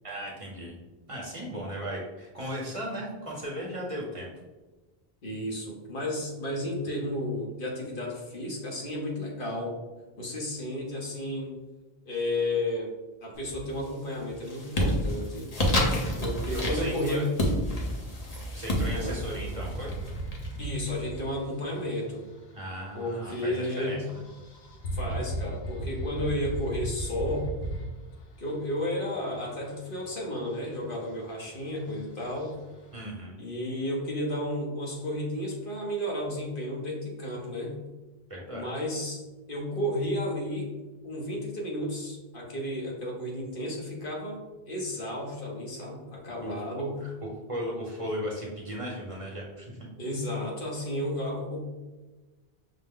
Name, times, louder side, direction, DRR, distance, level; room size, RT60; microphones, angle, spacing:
voice 1, 0.0-0.8 1.1-4.3 15.7-16.2 16.5-17.3 18.5-20.0 22.5-24.2 32.9-33.4 38.3-38.7 46.4-46.5 47.0-47.1 47.5-49.8, equal, 35° right, -4 dB, 0.9 m, -36 dB
voice 2, 5.2-9.8 10.2-11.5 12.1-12.9 13.2-15.5 16.2-17.3 18.9-19.2 20.6-22.2 22.9-24.0 24.9-27.5 28.4-32.5 33.4-37.8 38.5-39.2 39.5-40.7 41.0-47.0 50.0-51.6, left 1 dB, 60° left, -2 dB, 1.1 m, -32 dB
sound 1, 13.4-13.9 14.3-20.9, equal, 45° left, 0.8 m, -30 dB
sound 2, 18.6-33.0, right 1 dB, 85° left, 1.1 m, -38 dB
5.7 x 2.1 x 3.6 m, 1.2 s
omnidirectional pair, 1.0 m